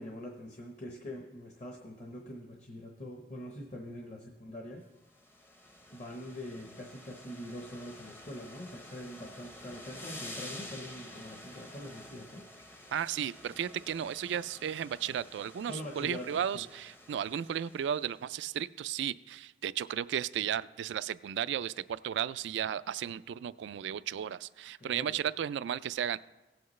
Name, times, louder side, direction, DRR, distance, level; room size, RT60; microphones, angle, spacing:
voice 1, 0.0-4.8 5.9-12.5 15.7-16.6 24.8-25.1, left 1 dB, 40° left, 1 dB, 0.9 m, -44 dB
sound 1, 5.0-18.3, left 1 dB, 15° left, 0.6 m, -50 dB
voice 2, 12.9-26.2, right 9 dB, 90° right, 17 dB, 0.3 m, -34 dB
17.0 x 7.9 x 3.1 m, 1.1 s
head